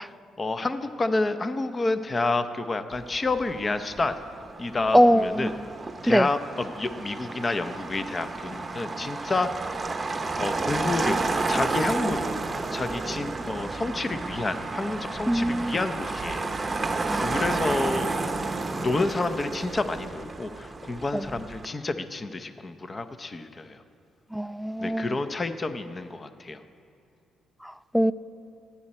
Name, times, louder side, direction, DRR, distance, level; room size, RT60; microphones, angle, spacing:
voice 1, 0.0-4.2 4.6-5.5 6.0-9.5 10.4-11.2 11.5-12.2 12.7-18.1 18.7-23.8 24.8-26.6, left 3 dB, 25° left, 10 dB, 0.7 m, -29 dB
Motor vehicle (road), 2.9-21.7, right 3 dB, 25° right, 0.8 m, -31 dB
voice 2, 4.9-5.5 6.1-6.3 15.3-15.7 17.1-17.3 24.3-25.1 27.9-28.1, equal, ahead, 16 dB, 0.3 m, -21 dB
27.5 x 9.8 x 4.3 m, 2.4 s
cardioid pair, 115°, 0 cm